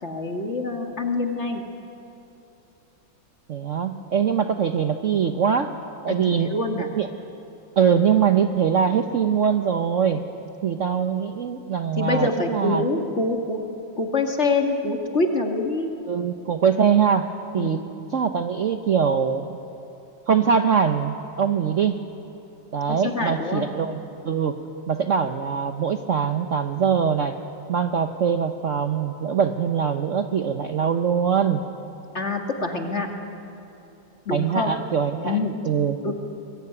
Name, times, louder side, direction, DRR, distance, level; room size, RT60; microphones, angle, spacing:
voice 1, 0.0-1.6 6.1-6.9 12.0-13.6 14.0-15.9 17.5-17.8 22.9-23.7 32.1-33.1 34.3-34.7 35.2-35.5 36.0-36.1, left 3 dB, 35° left, 3 dB, 2.4 m, -25 dB
voice 2, 3.5-5.7 6.0-6.5 6.9-7.1 7.8-10.2 10.6-12.9 16.1-17.8 18.1-19.6 20.3-22.0 22.7-24.6 24.9-27.3 27.7-31.6 34.3-36.0, right 7 dB, 50° right, 7 dB, 1.0 m, -22 dB
23.5 x 22.0 x 9.7 m, 3.0 s
omnidirectional pair, 2.1 m